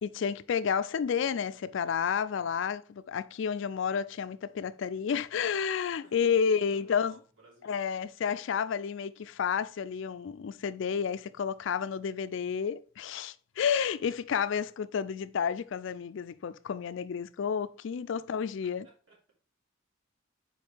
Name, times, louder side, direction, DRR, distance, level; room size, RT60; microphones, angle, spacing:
voice 1, 0.0-7.2 7.6-18.9, left 7 dB, 60° left, 0.3 m, -31 dB
voice 2, 5.9-6.3 6.7-7.7 8.0-8.1 18.8-19.2, right 2 dB, 70° right, 3.0 m, -58 dB
5.3 x 4.6 x 4.6 m
head